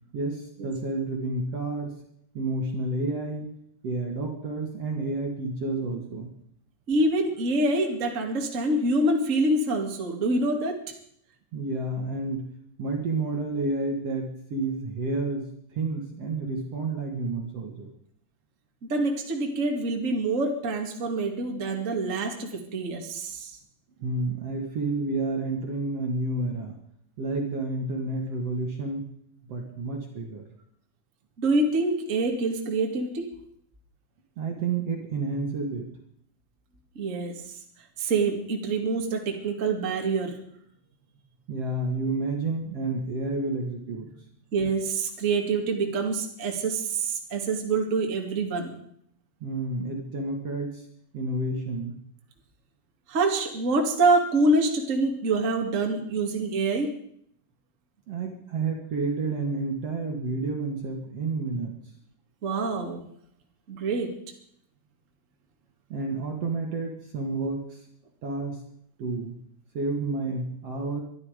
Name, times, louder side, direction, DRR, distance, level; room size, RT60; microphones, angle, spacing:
voice 1, 0.1-1.9 2.3-3.5 3.8-6.4 11.5-12.5 12.8-17.9 24.0-26.7 27.2-29.1 29.4-30.5 34.4-35.9 41.5-44.3 49.4-50.8 51.1-52.0 58.1-61.8 65.9-67.8 68.2-68.6 69.0-69.4 69.7-71.0, right 3 dB, 50° right, 1 dB, 2.5 m, -30 dB
voice 2, 6.9-10.8 18.9-23.6 31.4-33.3 37.0-37.4 38.0-40.4 44.5-48.7 53.1-56.9 62.4-63.0 63.7-64.1, right 2 dB, 25° right, 2 dB, 2.0 m, -26 dB
23.0 x 12.5 x 5.1 m, 0.69 s
omnidirectional pair, 4.5 m